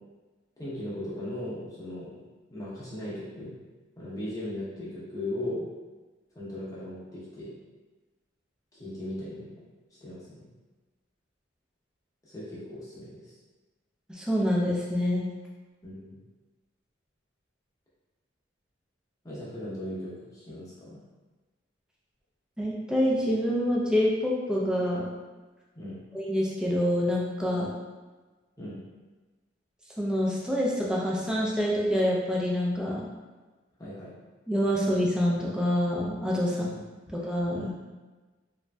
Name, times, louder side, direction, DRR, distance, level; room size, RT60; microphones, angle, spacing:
voice 1, 0.6-3.5 4.0-5.7 6.3-7.5 8.7-9.6 9.9-10.5 12.2-13.3 15.8-16.2 19.2-21.0 25.7-26.0 28.6-28.8 33.8-34.1 36.5-36.8 37.5-37.6, left 1 dB, 20° left, -8 dB, 0.8 m, -38 dB
voice 2, 14.1-15.3 22.6-25.1 26.1-27.7 30.0-33.1 34.5-36.7 37.1-37.8, equal, 5° right, -4 dB, 0.4 m, -26 dB
3.1 x 2.5 x 2.2 m, 1.3 s
head